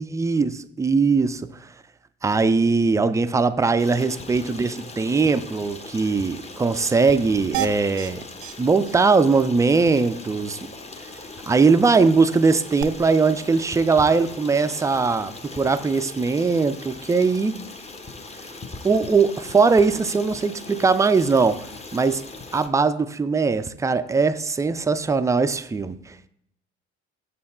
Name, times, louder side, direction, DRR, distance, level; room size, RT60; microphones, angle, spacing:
voice 1, 0.0-1.7 2.2-8.2 8.6-10.6 11.5-17.5 18.8-21.6 21.9-22.2 22.5-26.2, right 4 dB, 10° right, 12 dB, 0.4 m, -20 dB
Stream, 3.8-22.7, left 3 dB, 20° left, 0.8 m, -40 dB
sound 1, 7.5-8.1 8.4-8.5 8.9-9.0 9.3-9.4 12.8-12.9, right 12 dB, 70° right, 0.5 m, -28 dB
6.8 x 4.2 x 4.2 m, 0.73 s
figure-of-eight pair, 50°, 34 cm